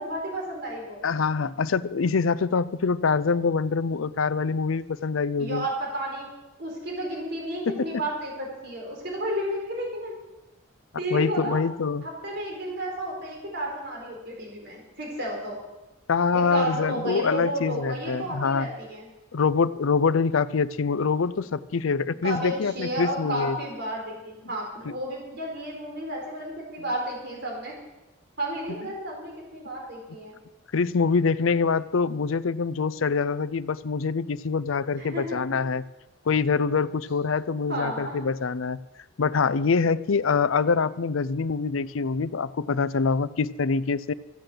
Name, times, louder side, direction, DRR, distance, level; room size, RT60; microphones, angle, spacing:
voice 1, 0.0-1.1 5.4-6.3 6.6-10.2 11.0-11.6 12.0-15.6 16.3-19.1 22.2-27.7 28.4-30.4 35.0-35.4 37.7-38.2, right 1 dB, 55° right, -1 dB, 4.5 m, -32 dB
voice 2, 1.0-5.6 7.7-7.9 11.1-12.0 16.1-18.7 19.3-23.6 30.7-35.8 36.3-38.8 39.2-44.1, left 5 dB, 85° left, 16 dB, 0.5 m, -25 dB
14.5 x 9.0 x 7.9 m, 1.0 s
head